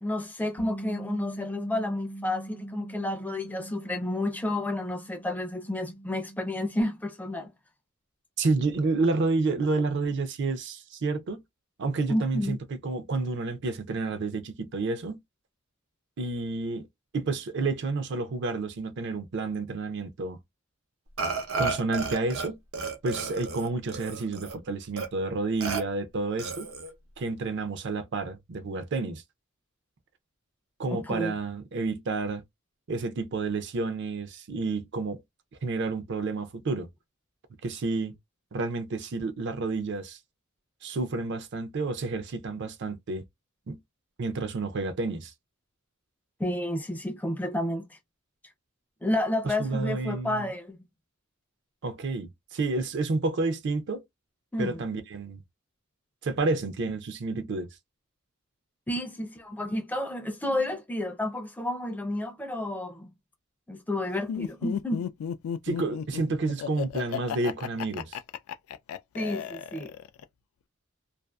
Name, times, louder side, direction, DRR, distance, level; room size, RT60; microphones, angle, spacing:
voice 1, 0.0-7.5 12.1-12.6 30.9-31.3 46.4-48.0 49.0-50.9 54.5-54.8 58.9-63.1 63.7-65.1 69.1-69.9, left 1 dB, 10° left, 0.4 m, -31 dB
Bass guitar, 0.6-6.8, right 1 dB, 55° left, 0.7 m, -42 dB
voice 2, 8.4-11.4 11.8-15.2 16.2-16.9 17.1-20.4 21.6-22.6 23.0-26.7 27.2-29.2 30.8-32.4 32.9-35.2 35.6-36.9 37.6-38.1 38.5-40.2 40.8-43.2 43.7-43.8 44.2-45.3 49.6-50.5 51.8-54.0 54.6-55.4 56.2-57.7 65.6-68.2, right 3 dB, 60° right, 0.5 m, -30 dB
Burping eructation, 21.2-22.5 22.7-24.6 25.0-25.1 25.6-25.8 26.4-26.9, right 4 dB, 85° right, 0.8 m, -32 dB
Laughter, 64.3-70.2, left 8 dB, 85° left, 0.3 m, -34 dB
2.5 x 2.3 x 2.2 m
head